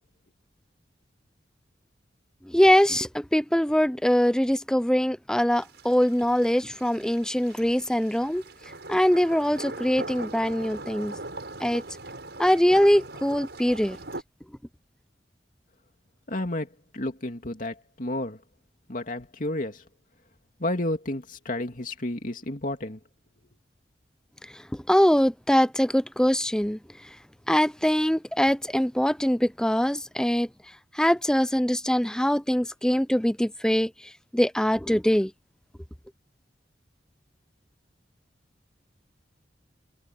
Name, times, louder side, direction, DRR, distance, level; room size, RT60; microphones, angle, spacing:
voice 1, 2.5-8.4 8.9-11.1 11.6-11.8 12.4-14.0 24.7-26.8 27.5-30.5 30.9-33.9 34.3-35.3, equal, 5° left, 0.5 m, -23 dB
sound 1, 5.5-14.2, right 2 dB, 70° right, 6.9 m, -41 dB
voice 2, 16.3-16.7 16.9-18.4 18.9-19.8 20.6-23.0, left 1 dB, 50° left, 2.7 m, -31 dB
head